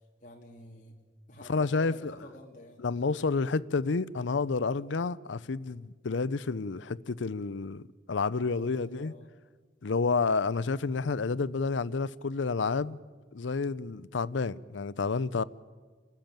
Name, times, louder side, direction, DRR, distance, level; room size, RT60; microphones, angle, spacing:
voice 1, 0.2-1.0 1.3-2.8 8.6-9.3, left 1 dB, 40° left, 2.4 m, -50 dB
voice 2, 1.5-2.1 2.8-9.1 9.8-13.0 13.3-15.4, left 4 dB, 85° left, 0.6 m, -30 dB
29.0 x 13.5 x 9.0 m
head